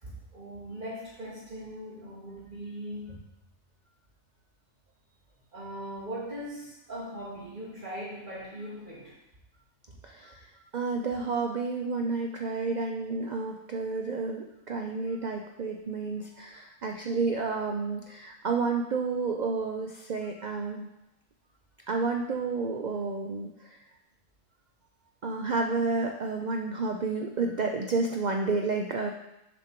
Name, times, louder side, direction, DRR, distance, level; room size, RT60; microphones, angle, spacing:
voice 1, 0.0-3.2 5.5-9.2 9.9-10.0, equal, 35° right, -8 dB, 2.7 m, -40 dB
voice 2, 10.0-10.4 10.7-20.9 21.9-23.8 25.2-29.1, right 4 dB, 90° right, 3 dB, 0.4 m, -30 dB
7.0 x 5.2 x 4.5 m, 0.90 s
omnidirectional pair, 1.4 m